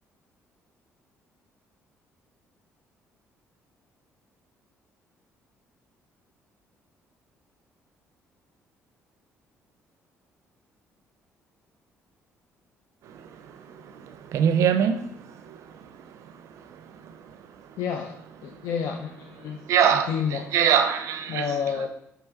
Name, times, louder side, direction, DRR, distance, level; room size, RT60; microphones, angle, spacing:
voice 1, 13.0-17.8 18.5-18.7 19.7-21.5, right 8 dB, 70° right, 9 dB, 0.4 m, -26 dB
voice 2, 17.8-20.7 21.3-21.9, left 7 dB, 75° left, 3 dB, 0.4 m, -30 dB
4.7 x 2.9 x 3.3 m, 0.77 s
cardioid pair, 130°, 5 cm